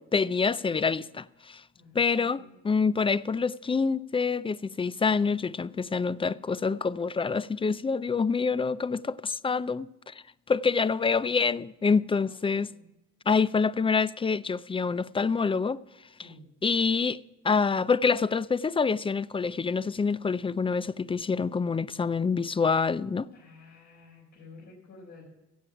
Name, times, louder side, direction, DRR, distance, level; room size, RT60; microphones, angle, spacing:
voice 1, 0.1-1.6 1.9-10.1 10.5-12.7 13.3-15.8 16.6-17.2 17.4-23.3, left 5 dB, 20° left, 0.4 m, -26 dB
voice 2, 1.7-2.6 12.3-12.8 16.1-16.5 23.3-25.2, left 3 dB, 75° left, 4.3 m, -52 dB
15.5 x 7.7 x 5.8 m
cardioid pair, 90°, 30 cm